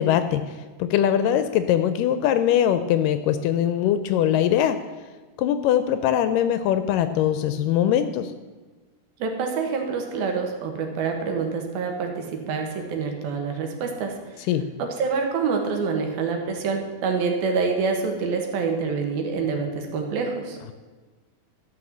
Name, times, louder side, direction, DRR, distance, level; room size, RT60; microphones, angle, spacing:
voice 1, 0.0-4.8 5.4-8.3 14.5-14.6, left 10 dB, 80° left, 10 dB, 2.0 m, -22 dB
voice 2, 9.2-14.1 14.8-20.6, right 5 dB, 85° right, 3 dB, 3.2 m, -26 dB
12.5 x 6.0 x 7.3 m, 1.3 s
omnidirectional pair, 4.2 m